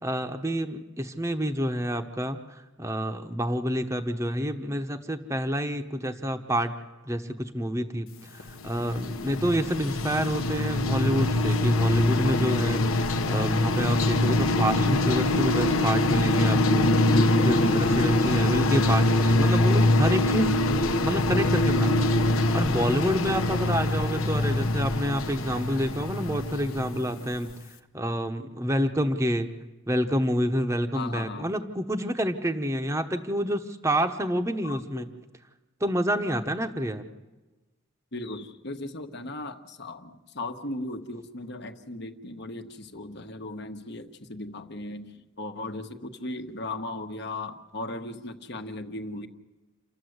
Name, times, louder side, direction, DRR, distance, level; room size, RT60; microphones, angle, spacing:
voice 1, 0.0-2.4 2.8-6.8 7.1-20.5 21.0-22.1 22.5-27.6 27.9-29.5 29.9-35.1 35.8-37.1, equal, 15° right, 6 dB, 0.9 m, -28 dB
sound 1, 8.4-27.4, left 1 dB, 80° left, 1.1 m, -24 dB
voice 2, 30.9-31.5 34.6-35.1 38.1-49.3, left 2 dB, 55° left, 6 dB, 1.3 m, -37 dB
28.5 x 12.0 x 8.0 m, 1.2 s
head